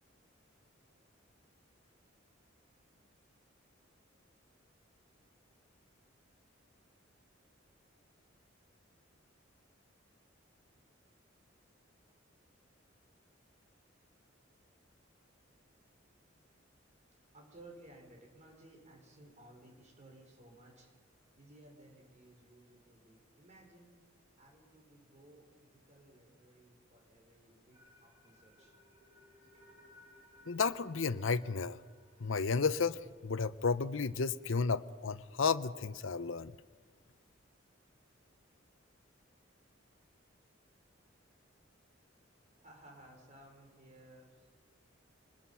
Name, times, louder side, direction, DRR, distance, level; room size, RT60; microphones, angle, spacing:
voice 1, 17.3-20.9 21.4-24.0 24.4-28.8 29.5-29.7 42.1-42.2 42.6-44.5, right 1 dB, 35° right, 1 dB, 5.3 m, -58 dB
sound 1, 27.7-33.8, left 2 dB, 20° right, 5.9 m, -64 dB
voice 2, 30.5-31.8 32.2-36.6, left 5 dB, 80° left, 15 dB, 0.7 m, -32 dB
26.0 x 20.5 x 5.7 m, 1.5 s
head